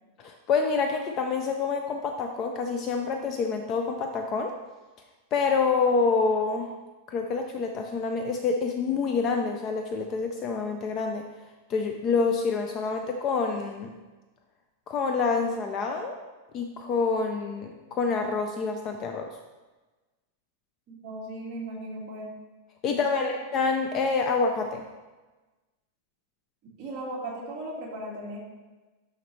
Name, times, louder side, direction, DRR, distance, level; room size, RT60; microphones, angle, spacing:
voice 1, 0.2-4.5 5.3-6.7 7.1-11.3 11.7-14.0 14.9-16.2 16.5-19.4 22.8-24.9, left 4 dB, 25° left, 4 dB, 0.4 m, -27 dB
voice 2, 20.9-22.3 22.9-23.3 26.8-28.4, right 1 dB, 25° right, -5 dB, 1.8 m, -37 dB
11.0 x 3.9 x 3.2 m, 1.2 s
supercardioid pair, 175°, 0 cm